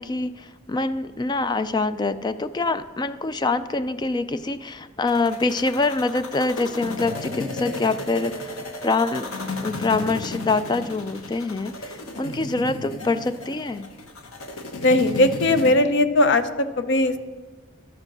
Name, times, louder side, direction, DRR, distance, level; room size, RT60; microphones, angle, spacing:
voice 1, 0.0-8.6 8.8-9.3 9.6-13.9, left 3 dB, 20° left, 13 dB, 0.3 m, -25 dB
sound 1, 5.1-15.7, left 2 dB, 85° left, 1.2 m, -34 dB
voice 2, 14.8-16.5 16.8-17.2, left 2 dB, 55° left, 11 dB, 0.6 m, -18 dB
11.5 x 7.7 x 6.1 m, 1.3 s
head